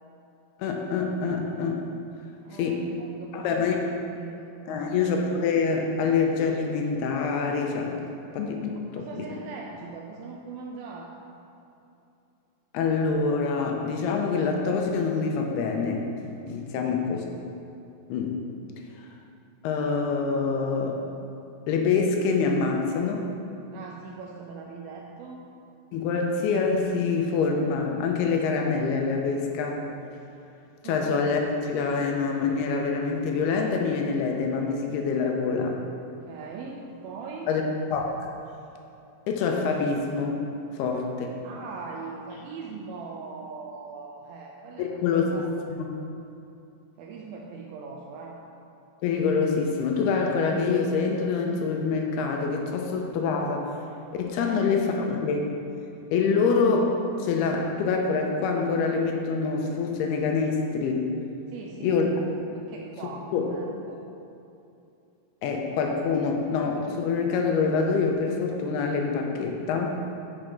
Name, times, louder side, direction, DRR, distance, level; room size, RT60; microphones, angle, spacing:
voice 1, 0.6-1.8 2.6-2.8 3.3-3.8 4.7-8.0 8.3-9.3 12.7-16.1 16.5-17.2 18.1-18.4 19.6-21.0 21.7-23.3 25.9-29.9 30.8-35.8 37.5-37.6 37.9-38.2 39.3-40.4 40.7-41.3 44.8-45.4 45.7-45.9 49.0-53.7 54.1-55.5 56.1-61.0 61.8-62.1 63.3-63.5 65.4-70.0, left 5 dB, 80° left, 2 dB, 2.6 m, -25 dB
voice 2, 2.4-3.6 4.2-5.1 8.7-11.1 16.7-17.0 23.7-25.4 30.8-31.1 36.2-37.5 41.4-45.5 47.0-48.4 54.4-54.7 61.5-62.0 62.5-64.0, right 4 dB, 80° right, 0 dB, 2.2 m, -41 dB
8.9 x 6.6 x 5.2 m, 2.7 s
omnidirectional pair, 4.8 m